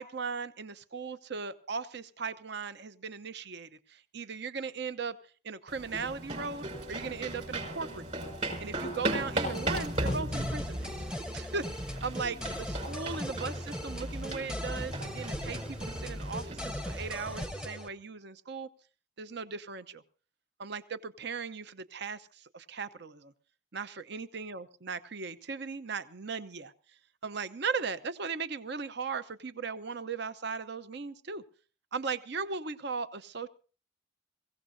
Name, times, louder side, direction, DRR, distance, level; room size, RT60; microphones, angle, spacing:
voice 1, 0.0-5.2 5.4-10.9 11.3-18.7 19.2-20.0 20.6-23.3 23.7-26.7 27.2-31.4 31.9-33.5, right 5 dB, 55° right, 13 dB, 0.8 m, -38 dB
sound 1, 5.7-17.5, right 1 dB, 35° right, 5.8 m, -37 dB
sound 2, 9.5-17.9, equal, 5° right, 0.8 m, -39 dB
24.0 x 16.5 x 2.7 m, 0.38 s
head